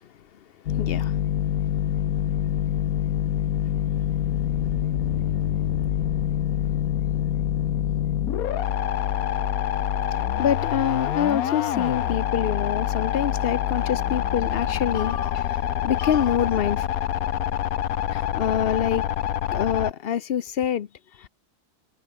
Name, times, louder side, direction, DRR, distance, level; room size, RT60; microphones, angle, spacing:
sound 1, 0.7-19.9, left 10 dB, 70° left, 1.3 m, -26 dB
voice 1, 0.7-1.2 10.1-16.9 18.1-19.1 19.5-20.9 21.2-21.3, left 9 dB, 55° left, 0.7 m, -26 dB
omnidirectional pair, 1.6 m